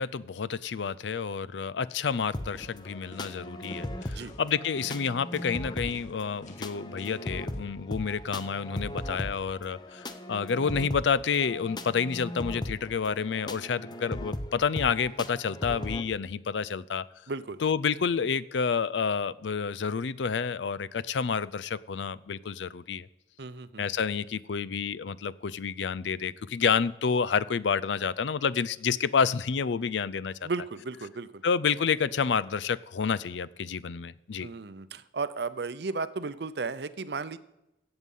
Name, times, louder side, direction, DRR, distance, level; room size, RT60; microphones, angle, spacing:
voice 1, 0.0-17.0 17.6-23.1 23.8-30.5 31.4-34.5, left 6 dB, 85° left, 19 dB, 0.5 m, -29 dB
sound 1, 2.2-2.3 2.5-2.7 3.1-3.4 3.6-4.4 4.8-5.0 5.3-5.5 5.9-6.1 6.4-6.6 7.0-7.2 7.5-7.6, left 2 dB, 40° left, 1.7 m, -48 dB
sound 2, 2.3-16.0, left 1 dB, 25° left, 0.8 m, -38 dB
voice 2, 17.3-17.6 23.4-23.8 30.4-31.4 34.4-37.4, right 4 dB, 65° right, 15 dB, 0.6 m, -34 dB
15.5 x 8.0 x 5.5 m, 0.91 s
head